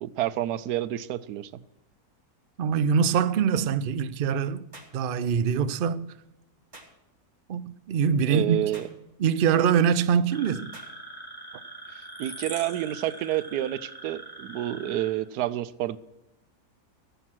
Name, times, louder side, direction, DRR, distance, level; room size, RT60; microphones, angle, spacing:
voice 1, 0.0-1.6 8.3-8.9 11.9-16.0, right 13 dB, 90° right, 1.2 m, -29 dB
voice 2, 2.6-4.6 4.9-6.1 7.5-8.6 9.2-10.7, right 7 dB, 70° right, 0.5 m, -24 dB
sound 1, 4.7-5.0 6.7-7.0 8.7-9.0 10.7-11.0, right 2 dB, 25° right, 2.2 m, -47 dB
sound 2, 10.3-15.1, right 1 dB, 15° left, 3.0 m, -42 dB
15.0 x 8.0 x 6.1 m
omnidirectional pair, 1.6 m